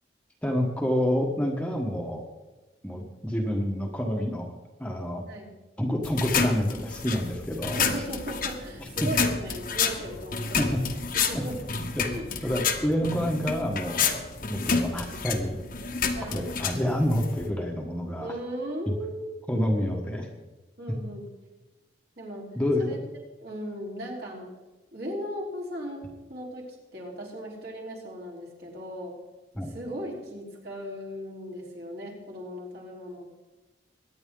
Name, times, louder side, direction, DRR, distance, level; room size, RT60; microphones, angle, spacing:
voice 1, 0.4-2.2 2.8-4.5 4.8-5.2 5.8-7.8 10.6-10.8 11.3-11.4 11.9-12.1 12.4-14.2 14.5-15.6 16.2-18.3 19.5-20.3 22.5-23.0 29.5-29.7, equal, 5° left, 0 dB, 1.3 m, -28 dB
voice 2, 5.3-5.6 7.6-11.0 11.3-11.6 12.1-12.3 14.4-14.8 16.1-16.5 18.2-19.5 20.8-21.3 22.2-22.5 22.8-23.0 23.4-24.5 24.9-29.2 29.6-33.3, equal, 55° right, -3 dB, 4.0 m, -37 dB
sound 1, 6.0-17.5, left 5 dB, 45° left, 1.2 m, -30 dB
23.0 x 9.9 x 3.8 m, 1.1 s
head